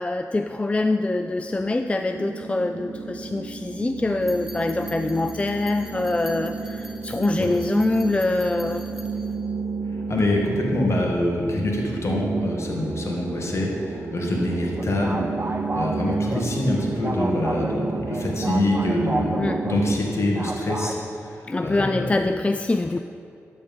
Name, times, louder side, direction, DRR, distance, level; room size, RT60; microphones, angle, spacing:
voice 1, 0.0-8.8 19.4-19.7 21.5-23.0, left 2 dB, 20° left, 8 dB, 0.3 m, -24 dB
sound 1, 1.1-19.9, right 4 dB, 70° right, 0.7 m, -32 dB
sound 2, 4.2-9.3, equal, 5° right, 1.3 m, -45 dB
voice 2, 10.1-22.2, left 1 dB, 50° left, -1 dB, 1.8 m, -25 dB
sound 3, 14.5-20.9, right 2 dB, 30° right, 0.7 m, -32 dB
12.5 x 4.2 x 5.4 m, 2.5 s
cardioid pair, 50°, 6 cm